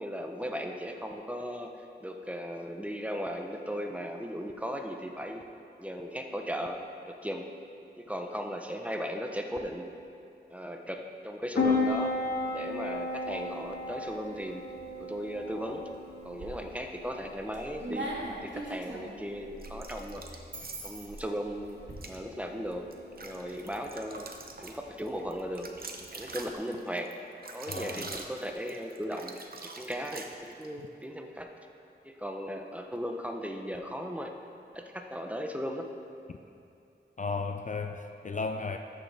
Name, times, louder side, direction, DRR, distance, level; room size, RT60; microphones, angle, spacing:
voice 1, 0.0-5.4 5.8-6.8 7.1-7.5 8.0-9.8 10.5-12.1 12.5-14.6 15.0-15.9 16.2-18.1 18.4-20.4 20.8-22.9 23.2-24.3 24.6-25.7 26.2-27.1 27.5-31.5 32.0-34.3 34.7-35.9, equal, 5° right, 3 dB, 0.7 m, -37 dB
Piano, 11.5-26.5, left 3 dB, 65° left, 1.6 m, -36 dB
sound 1, 16.3-16.9 17.3-21.9, right 2 dB, 90° right, 1.7 m, -40 dB
sound 2, 19.6-21.2 21.9-22.2 22.7-30.7, right 3 dB, 55° right, 0.7 m, -44 dB
voice 2, 27.7-28.1 37.2-38.8, left 4 dB, 45° left, 6 dB, 0.4 m, -34 dB
13.0 x 6.3 x 3.4 m, 2.8 s
wide cardioid pair, 85°, 18 cm